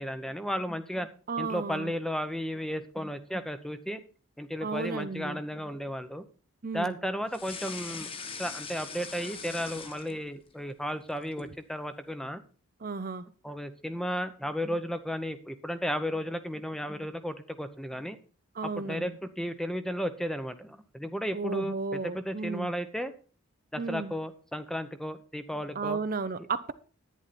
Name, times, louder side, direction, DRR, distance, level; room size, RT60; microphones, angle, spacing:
voice 1, 0.0-1.1 1.4-4.0 4.4-6.2 6.7-8.1 8.4-12.4 13.4-18.2 18.6-23.1 23.7-26.0, equal, ahead, 10 dB, 0.8 m, -34 dB
voice 2, 1.3-1.9 4.6-5.4 6.6-7.0 12.8-13.2 18.6-19.1 21.3-22.7 23.8-24.1 25.8-26.7, right 4 dB, 40° right, 12 dB, 0.6 m, -33 dB
sound 1, 7.3-10.5 10.9-11.6, left 5 dB, 25° left, 1.1 m, -41 dB
11.0 x 10.0 x 4.2 m, 0.38 s
head